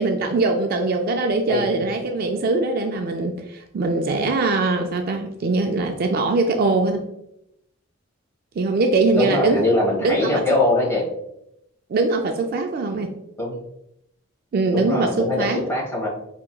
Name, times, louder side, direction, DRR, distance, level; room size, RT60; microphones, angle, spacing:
voice 1, 0.0-7.0 8.6-9.7 10.0-10.6 11.9-13.1 14.5-15.6, right 3 dB, 45° right, 4 dB, 0.3 m, -22 dB
voice 2, 9.1-11.1 13.4-13.6 14.7-16.1, left 2 dB, 10° left, -6 dB, 1.3 m, -22 dB
4.6 x 2.8 x 2.2 m, 0.82 s
head